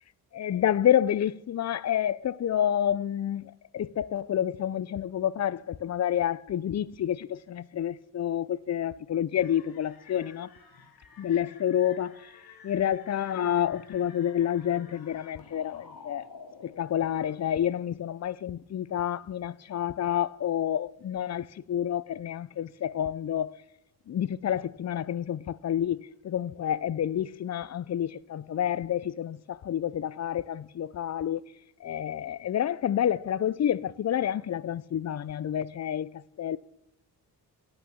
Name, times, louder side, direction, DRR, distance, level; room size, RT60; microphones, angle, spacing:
voice 1, 0.3-10.5 11.2-12.3 12.6-16.3 16.6-23.6 24.1-31.4 31.8-36.6, left 10 dB, 40° left, 0.5 m, -29 dB
sound 1, 9.4-17.7, left 5 dB, 60° left, 2.3 m, -52 dB
11.0 x 8.9 x 7.2 m
cardioid pair, 105°, 41 cm